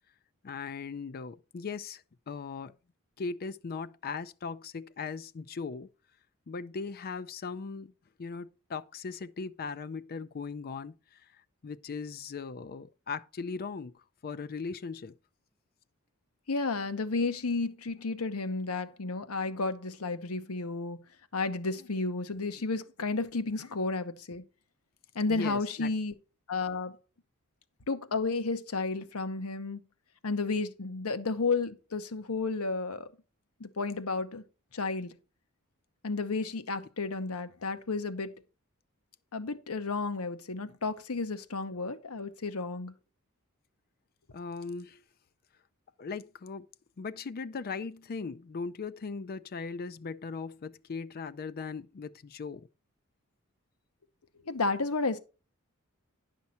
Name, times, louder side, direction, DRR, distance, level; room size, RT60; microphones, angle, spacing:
voice 1, 0.4-2.7 3.2-5.9 6.5-7.9 8.2-11.3 11.6-15.1 25.3-25.9 44.3-45.0 46.0-46.7 47.0-52.7, left 5 dB, 45° left, 0.4 m, -39 dB
voice 2, 16.5-21.0 21.3-24.4 25.1-26.1 26.5-27.0 27.9-29.8 30.2-33.1 33.6-34.4 34.7-35.1 36.0-38.3 39.3-42.9 54.4-55.2, left 3 dB, 80° left, 1.0 m, -32 dB
10.5 x 5.8 x 4.3 m
head